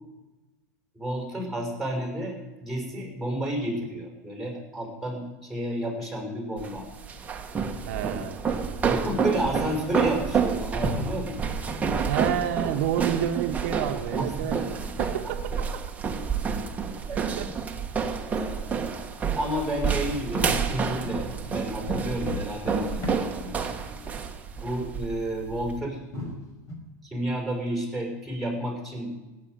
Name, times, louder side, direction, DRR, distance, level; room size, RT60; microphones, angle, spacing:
voice 1, 0.9-6.9 8.9-11.4 14.2-15.3 17.1-17.2 18.3-18.6 19.3-21.2 21.5-23.5 24.5-26.0 27.0-29.1, right 1 dB, ahead, 0 dB, 6.3 m, -31 dB
sound 1, 6.6-25.8, right 6 dB, 15° right, 1.6 m, -29 dB
voice 2, 7.9-8.3 12.0-14.6 15.0-15.8 17.1-17.5, right 10 dB, 70° right, 5 dB, 1.1 m, -29 dB
sound 2, 20.3-23.5 24.0-24.4 24.6-24.9 25.4-25.6 26.1-26.7, left 2 dB, 35° left, 5.2 m, -37 dB
17.5 x 8.4 x 9.3 m, 1.1 s
supercardioid pair, 130°, 9 cm